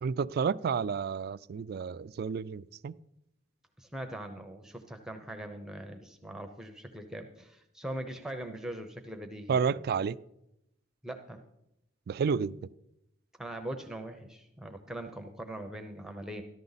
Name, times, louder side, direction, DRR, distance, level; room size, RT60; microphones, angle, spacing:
voice 1, 0.0-2.9 9.5-10.2 12.1-12.6, right 6 dB, 55° right, 0.3 m, -30 dB
voice 2, 3.8-9.6 11.0-11.4 13.4-16.4, right 1 dB, 5° right, 0.7 m, -41 dB
14.0 x 11.0 x 4.0 m
head